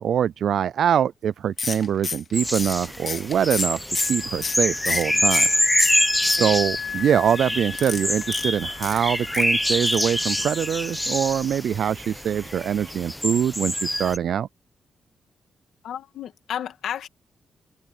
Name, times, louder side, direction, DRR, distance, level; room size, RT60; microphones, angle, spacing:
voice 1, 0.0-5.5 6.3-14.5, right 9 dB, 70° right, 0.4 m, -24 dB
sound 1, 1.6-5.5 5.8-6.8 7.7-9.5 9.9-10.2 10.4-10.5 10.8-10.9, left 4 dB, 35° left, 2.2 m, -31 dB
sound 2, 2.3-14.2, left 1 dB, 5° left, 1.0 m, -26 dB
Wind instrument woodwind instrument, 3.9-11.4, left 6 dB, 55° left, 7.7 m, -37 dB
voice 2, 6.2-6.6 15.8-17.1, left 9 dB, 90° left, 1.9 m, -33 dB
open air
cardioid pair, 125°, 0 cm